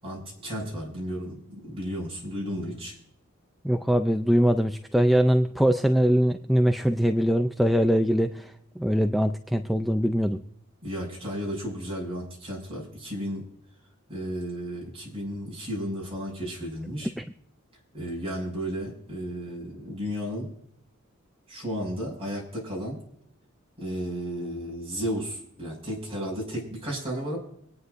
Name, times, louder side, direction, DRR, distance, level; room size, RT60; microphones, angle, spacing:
voice 1, 0.0-2.9 10.8-13.5 14.1-17.1 17.9-20.5 21.5-23.0 23.8-27.4, equal, 30° right, -3 dB, 6.1 m, -33 dB
voice 2, 3.6-10.4 17.2-17.3, equal, ahead, 6 dB, 0.5 m, -22 dB
25.5 x 9.6 x 2.6 m, 0.72 s
head